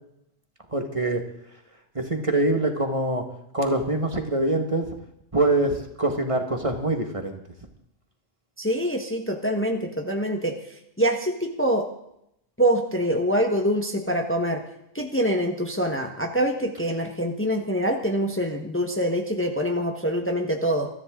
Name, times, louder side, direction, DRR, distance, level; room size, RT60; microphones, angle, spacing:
voice 1, 0.7-1.3 2.0-3.2 3.5-4.9 5.3-7.4, right 2 dB, 30° right, 4 dB, 1.8 m, -24 dB
voice 2, 8.6-10.6 11.0-11.9 12.6-14.6 14.9-20.9, equal, 10° left, 3 dB, 1.3 m, -25 dB
22.5 x 13.5 x 3.8 m, 0.79 s
omnidirectional pair, 1.1 m